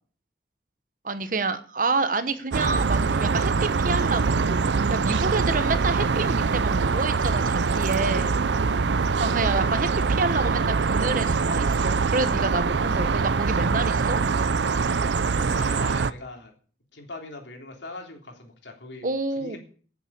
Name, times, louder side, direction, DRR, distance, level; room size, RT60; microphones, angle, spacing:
voice 1, 1.0-4.6 4.9-8.4 9.2-14.3 19.0-19.6, right 3 dB, 45° right, 12 dB, 1.1 m, -28 dB
sound 1, 2.5-16.1, right 4 dB, 80° right, 0.6 m, -23 dB
voice 2, 15.2-16.5 16.9-19.1 19.4-19.6, left 2 dB, 85° left, 3 dB, 3.4 m, -40 dB
11.5 x 7.3 x 8.6 m, 0.43 s
head